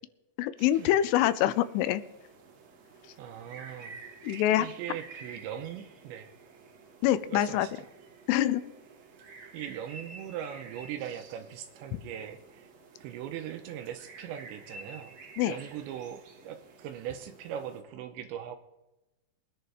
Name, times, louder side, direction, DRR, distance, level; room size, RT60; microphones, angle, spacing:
voice 1, 0.4-2.0 4.2-4.7 7.0-7.7 8.3-8.6 15.4-15.6, left 12 dB, 90° left, 14 dB, 3.2 m, -25 dB
sound 1, 0.6-17.8, right 4 dB, 60° right, 1.8 m, -51 dB
voice 2, 3.2-4.0 4.3-6.3 7.3-7.9 9.5-12.7 13.0-15.1 15.5-18.6, right 10 dB, 80° right, 8 dB, 2.8 m, -40 dB
22.5 x 10.5 x 3.4 m, 0.97 s
omnidirectional pair, 5.6 m